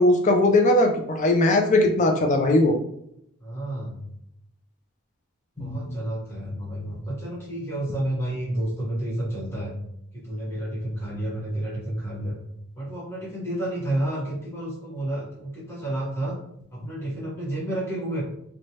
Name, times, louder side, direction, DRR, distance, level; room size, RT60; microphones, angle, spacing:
voice 1, 0.0-2.8 5.6-6.0, left 2 dB, 35° left, 3 dB, 0.3 m, -20 dB
voice 2, 3.4-4.1 5.6-9.7 10.1-12.4 12.7-16.4 16.7-18.2, right 1 dB, 10° left, -7 dB, 1.0 m, -30 dB
3.0 x 2.2 x 2.7 m, 0.77 s
head